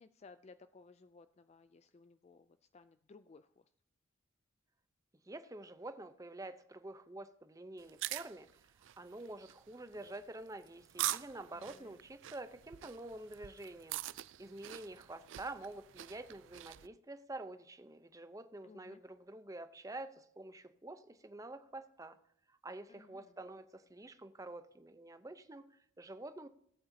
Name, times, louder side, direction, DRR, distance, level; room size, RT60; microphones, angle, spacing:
voice 1, 0.0-3.6 11.5-12.0 18.6-19.0 22.9-23.3, left 4 dB, 30° left, 11 dB, 0.3 m, -59 dB
voice 2, 5.3-8.7 9.0-14.0 14.4-22.2 22.5-26.5, right 2 dB, 15° right, 10 dB, 0.7 m, -48 dB
sound 1, 7.8-16.9, right 14 dB, 65° right, 0.4 m, -44 dB
18.0 x 8.5 x 2.8 m, 0.69 s
head